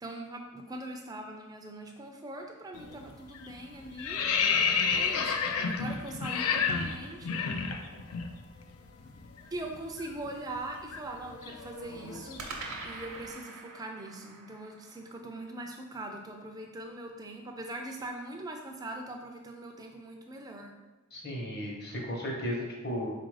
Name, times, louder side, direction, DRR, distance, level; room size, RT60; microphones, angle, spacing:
voice 1, 0.0-7.5 9.5-12.4 12.8-20.8, right 1 dB, 15° right, 2 dB, 0.3 m, -42 dB
sound 1, 2.7-3.0 3.3-8.3 8.6-8.8 9.1-13.1, left 6 dB, 75° left, 0.4 m, -31 dB
sound 2, 4.7-6.6 12.4-16.7, right 3 dB, 70° right, 0.6 m, -47 dB
voice 2, 21.1-23.1, equal, 45° left, -2 dB, 0.9 m, -35 dB
4.0 x 2.5 x 4.7 m, 1.2 s
head